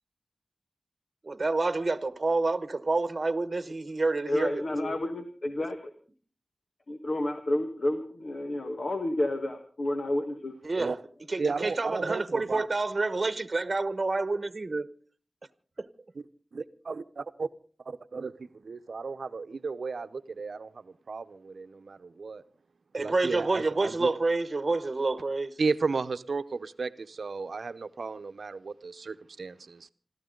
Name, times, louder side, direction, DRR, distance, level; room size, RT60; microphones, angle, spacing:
voice 1, 1.2-4.6 10.6-10.9 11.3-14.9 15.8-15.9 22.9-25.6, right 3 dB, 50° right, 1.1 m, -28 dB
voice 2, 4.3-5.8 6.9-10.5, left 1 dB, 65° left, 1.6 m, -30 dB
voice 3, 11.4-12.7 16.5-17.5 17.9-22.4 23.0-24.1 25.6-29.9, right 4 dB, 85° right, 0.8 m, -34 dB
27.5 x 13.5 x 3.9 m
wide cardioid pair, 75°, 0 cm